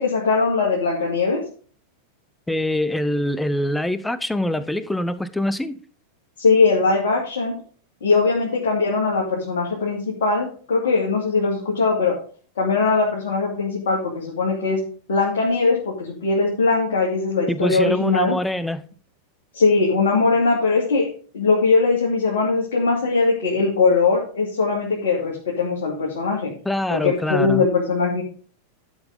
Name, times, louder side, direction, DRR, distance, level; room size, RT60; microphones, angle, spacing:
voice 1, 0.0-1.4 6.4-7.5 8.0-12.1 12.6-14.8 15.1-18.3 19.5-26.5 26.9-28.2, left 4 dB, 60° left, 2.5 m, -20 dB
voice 2, 2.5-5.8 17.5-18.8 26.6-27.7, left 1 dB, 5° left, 0.7 m, -24 dB
11.5 x 5.9 x 5.1 m
figure-of-eight pair, 90°, 0 cm